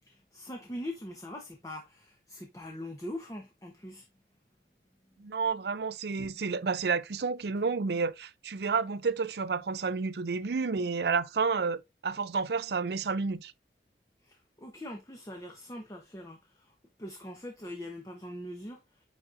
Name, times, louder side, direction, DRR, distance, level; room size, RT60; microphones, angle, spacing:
voice 1, 0.0-4.0 14.2-19.0, left 1 dB, 20° left, 0.9 m, -42 dB
voice 2, 5.2-13.5, right 4 dB, 70° right, 0.5 m, -30 dB
9.6 x 4.1 x 2.5 m
head